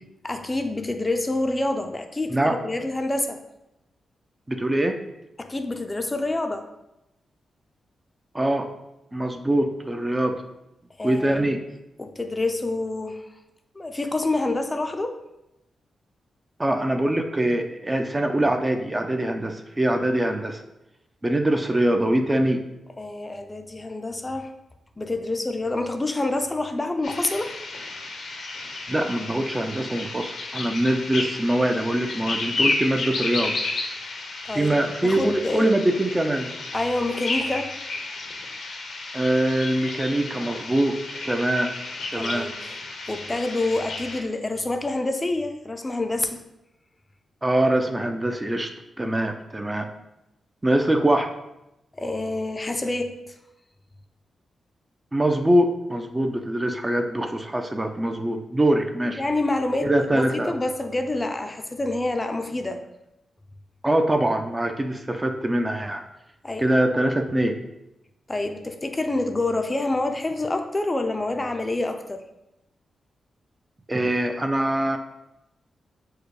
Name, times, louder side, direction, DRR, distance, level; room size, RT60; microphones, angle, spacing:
voice 1, 0.2-3.4 5.4-6.7 11.0-11.5 12.0-13.2 13.8-15.1 23.0-24.5 25.0-27.5 34.5-35.7 36.7-37.7 42.1-42.8 43.1-46.4 51.9-53.1 59.2-62.8 66.4-66.6 68.3-72.2, left 2 dB, 25° left, 6 dB, 0.5 m, -27 dB
voice 2, 4.5-5.0 8.3-8.7 9.1-10.4 11.0-11.6 16.6-20.6 21.2-22.6 28.9-33.6 34.5-36.5 39.1-41.0 41.2-41.7 42.1-42.5 47.4-48.7 49.0-49.9 50.6-51.3 55.1-59.2 59.8-60.5 63.8-66.0 66.6-67.6 73.9-75.0, right 1 dB, 20° right, 6 dB, 0.5 m, -23 dB
sound 1, 27.0-44.2, left 3 dB, 70° left, 0.7 m, -32 dB
4.7 x 2.2 x 4.7 m, 0.89 s
supercardioid pair, 50°, 0 cm